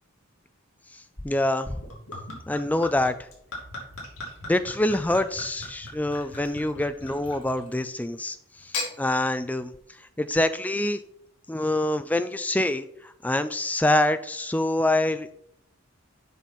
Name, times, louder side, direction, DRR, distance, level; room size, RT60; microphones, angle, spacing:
voice 1, 0.9-1.8 2.5-3.3 4.5-9.7 10.2-11.0 11.5-15.3, left 1 dB, 5° left, 11 dB, 0.3 m, -26 dB
Gurgling / Chink clink / Liquid, 1.7-7.9 8.5-8.9, left 2 dB, 85° left, 2.8 m, -38 dB
7.5 x 5.4 x 4.3 m, 0.69 s
head